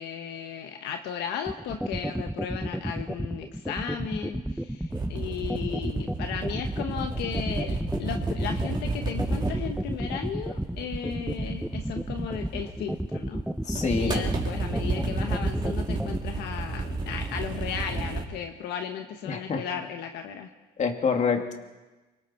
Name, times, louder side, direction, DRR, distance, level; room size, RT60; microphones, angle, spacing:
voice 1, 0.0-13.4 14.0-20.5, left 8 dB, 80° left, 5 dB, 1.5 m, -35 dB
sound 1, 1.5-16.2, equal, ahead, 0.7 m, -31 dB
sound 2, 4.9-13.0 13.6-18.2, right 3 dB, 25° right, 3.6 m, -32 dB
voice 2, 13.7-14.2 19.2-19.6 20.8-21.5, left 5 dB, 45° left, 4 dB, 2.7 m, -26 dB
28.0 x 25.0 x 4.6 m, 1.2 s
cardioid pair, 110°, 17 cm